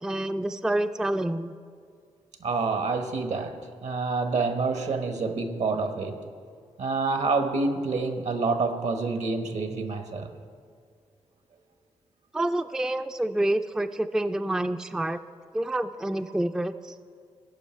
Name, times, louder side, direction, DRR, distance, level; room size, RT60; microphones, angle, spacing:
voice 1, 0.0-1.6 12.3-15.2 15.5-16.9, right 1 dB, 5° right, 9 dB, 0.3 m, -28 dB
voice 2, 2.4-6.2 6.8-10.3, right 4 dB, 65° right, 7 dB, 1.1 m, -27 dB
16.0 x 5.5 x 4.4 m, 2.2 s
supercardioid pair, 45°, 13 cm